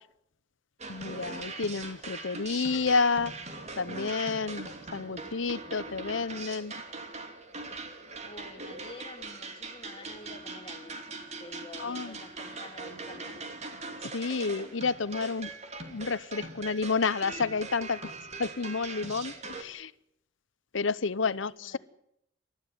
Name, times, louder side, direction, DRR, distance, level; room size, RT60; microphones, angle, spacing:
sound 1, 0.8-19.6, right 3 dB, 35° right, 2.9 m, -41 dB
voice 1, 0.9-3.3 3.8-6.7 11.8-12.2 14.1-15.5 15.9-18.1 18.4-19.9 20.7-21.8, left 4 dB, 70° left, 18 dB, 0.8 m, -30 dB
voice 2, 8.2-11.0 11.4-13.5 21.2-21.8, left 2 dB, 30° left, 4 dB, 3.0 m, -48 dB
29.0 x 14.0 x 9.5 m, 0.76 s
head